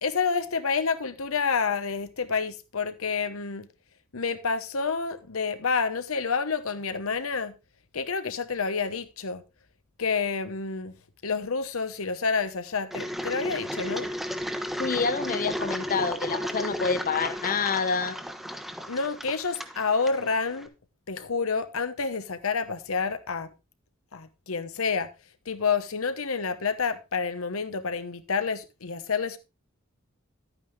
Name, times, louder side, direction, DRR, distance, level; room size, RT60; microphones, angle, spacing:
voice 1, 0.0-3.7 4.1-7.5 7.9-9.4 10.0-10.9 11.2-14.1 18.9-20.7 21.1-23.5 24.1-25.1 25.5-29.4, left 5 dB, 80° left, 1.0 m, -29 dB
Engine, 12.9-20.7, equal, ahead, 0.9 m, -34 dB
voice 2, 14.8-18.2, left 5 dB, 40° left, 0.7 m, -27 dB
11.0 x 9.1 x 3.5 m
head